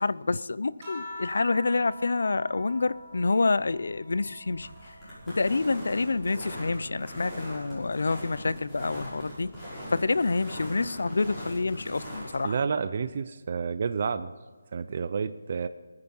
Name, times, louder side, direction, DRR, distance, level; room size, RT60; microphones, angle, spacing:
voice 1, 0.0-4.7 5.3-9.5 9.9-12.5, left 3 dB, 70° left, 0.5 m, -27 dB
sound 1, 0.8-5.6 6.1-7.8 9.0-9.5, left 1 dB, 15° right, 4.9 m, -46 dB
sound 2, 1.1-12.4, equal, 5° left, 5.9 m, -41 dB
voice 2, 12.4-14.3 14.7-15.7, right 5 dB, 35° right, 0.5 m, -30 dB
20.5 x 9.8 x 5.5 m
hypercardioid pair, 175°, 0 cm